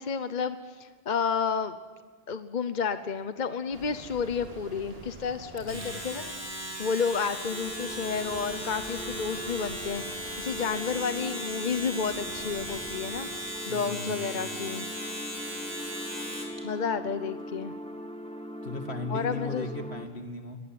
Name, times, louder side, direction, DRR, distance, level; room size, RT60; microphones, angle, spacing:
voice 1, 0.0-1.8 2.3-6.3 6.8-14.9 16.6-17.7 19.1-19.7, left 6 dB, 45° left, 11 dB, 1.0 m, -31 dB
sound 1, 3.7-13.5, right 2 dB, 65° right, 2.7 m, -48 dB
voice 2, 5.6-5.9 13.7-14.2 18.6-20.6, left 2 dB, 75° left, 5 dB, 2.6 m, -37 dB
Domestic sounds home sounds, 5.6-16.6, equal, 15° right, 4.7 m, -37 dB
sound 2, 7.5-20.1, equal, 5° left, 1.6 m, -41 dB
22.0 x 20.5 x 9.4 m, 1.4 s
omnidirectional pair, 1.1 m